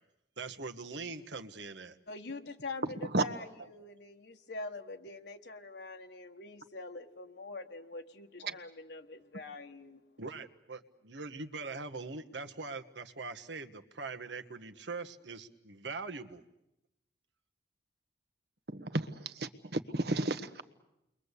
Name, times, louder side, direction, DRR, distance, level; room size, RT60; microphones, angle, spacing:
voice 1, 0.4-2.0 10.2-16.4, right 3 dB, 75° right, 7 dB, 1.5 m, -42 dB
voice 2, 2.1-10.0, left 3 dB, 65° left, 5 dB, 1.5 m, -44 dB
voice 3, 18.7-20.6, right 2 dB, 60° right, 10 dB, 1.4 m, -33 dB
29.5 x 22.5 x 8.3 m, 0.88 s
head